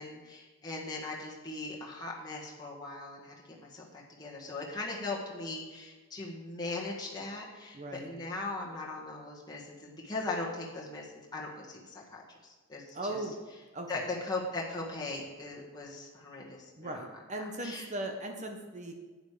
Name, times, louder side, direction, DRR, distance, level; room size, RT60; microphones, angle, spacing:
voice 1, 0.0-13.2 13.9-17.0 17.4-17.9, left 2 dB, 20° left, -4 dB, 1.6 m, -39 dB
voice 2, 7.7-8.1 12.9-13.3 13.7-13.9 16.8-18.9, right 1 dB, 35° right, 4 dB, 1.0 m, -38 dB
11.5 x 9.3 x 5.0 m, 1.3 s
head